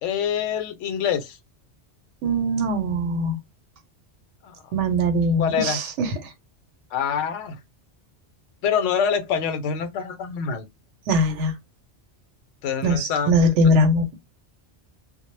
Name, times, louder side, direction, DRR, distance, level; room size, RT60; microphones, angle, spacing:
voice 1, 0.0-1.4 4.4-4.7 5.4-5.8 6.9-7.6 8.6-10.6 12.6-13.3, left 7 dB, 90° left, 0.9 m, -25 dB
voice 2, 2.2-3.4 4.7-6.3 11.1-11.5 12.8-14.1, equal, 85° right, 0.9 m, -21 dB
2.0 x 2.0 x 3.0 m
omnidirectional pair, 1.2 m